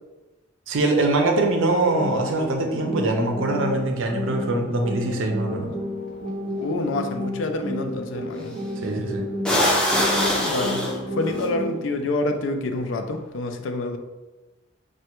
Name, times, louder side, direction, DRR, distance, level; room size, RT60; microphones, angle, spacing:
voice 1, 0.7-5.7 8.8-9.2, right 2 dB, 85° right, 2 dB, 0.5 m, -23 dB
sound 1, 1.9-11.9, left 1 dB, 40° right, 0.8 m, -31 dB
sound 2, 6.1-6.2 8.4-8.7 9.4-11.4, left 1 dB, 5° left, 0.4 m, -22 dB
voice 2, 6.6-8.6 10.4-14.0, left 2 dB, 75° left, 6 dB, 0.3 m, -27 dB
3.2 x 2.2 x 2.9 m, 1.1 s
head